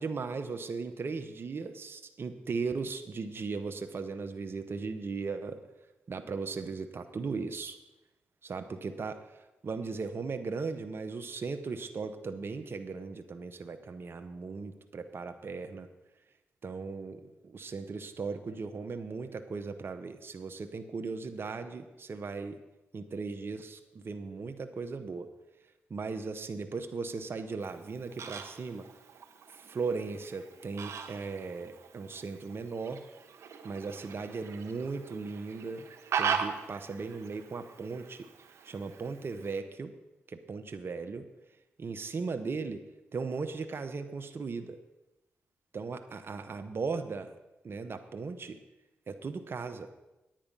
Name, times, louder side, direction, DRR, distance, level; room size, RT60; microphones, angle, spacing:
voice 1, 0.0-5.6 6.1-7.8 8.4-9.2 9.6-15.9 16.6-22.6 22.9-25.3 25.9-28.9 29.5-33.0 33.6-35.9 36.2-38.3 38.6-39.9 40.3-41.2 41.8-42.8 43.1-44.8 45.7-47.3 47.6-48.6 49.1-49.9, right 4 dB, 55° right, 7 dB, 0.9 m, -37 dB
Fowl, 27.6-39.6, right 6 dB, 70° right, 1.1 m, -40 dB
9.8 x 8.8 x 5.3 m, 1.0 s
supercardioid pair, 50°, 5 cm